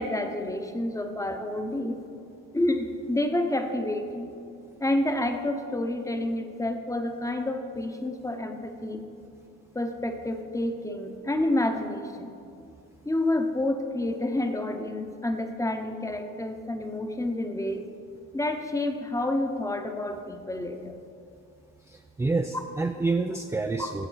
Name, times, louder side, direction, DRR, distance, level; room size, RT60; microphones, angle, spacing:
voice 1, 0.0-2.0 2.5-4.3 4.8-9.1 9.7-12.3 13.0-17.9 18.3-20.9 22.5-22.6 23.8-23.9, left 1 dB, 10° left, 6 dB, 0.9 m, -29 dB
voice 2, 21.9-24.1, right 3 dB, 10° right, 6 dB, 0.3 m, -28 dB
12.5 x 8.0 x 4.0 m, 2.5 s
cardioid pair, 90°, 30 cm